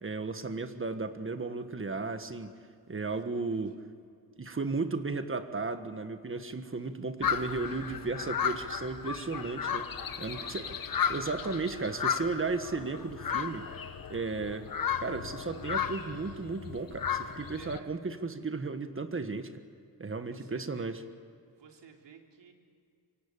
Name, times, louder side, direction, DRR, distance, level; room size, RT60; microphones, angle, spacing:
voice 1, 0.0-2.5 2.9-3.8 4.4-9.9 10.2-10.7 11.1-13.7 14.1-14.7 15.0-19.5 20.0-21.0, right 3 dB, 30° right, 9 dB, 1.5 m, -34 dB
voice 2, 3.1-3.6 10.2-11.8 17.6-17.9 20.3-21.0 21.5-22.5, right 6 dB, 80° right, 2 dB, 3.3 m, -54 dB
sound 1, 7.2-17.8, left 7 dB, 55° left, 1.4 m, -34 dB
26.0 x 24.5 x 8.5 m, 2.3 s
wide cardioid pair, 120°, 42 cm